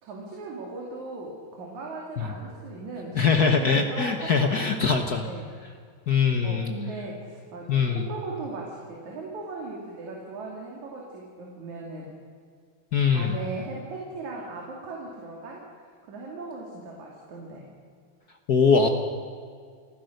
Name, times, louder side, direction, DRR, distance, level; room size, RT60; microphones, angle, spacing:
voice 1, 0.0-5.5 6.4-12.1 13.1-15.6 16.1-17.7, right 2 dB, 70° right, -2 dB, 4.0 m, -38 dB
voice 2, 3.1-5.3 6.1-6.7 7.7-8.1 12.9-13.4 18.5-18.9, left 5 dB, 65° left, 5 dB, 0.9 m, -22 dB
28.0 x 15.0 x 6.6 m, 2.1 s
omnidirectional pair, 3.5 m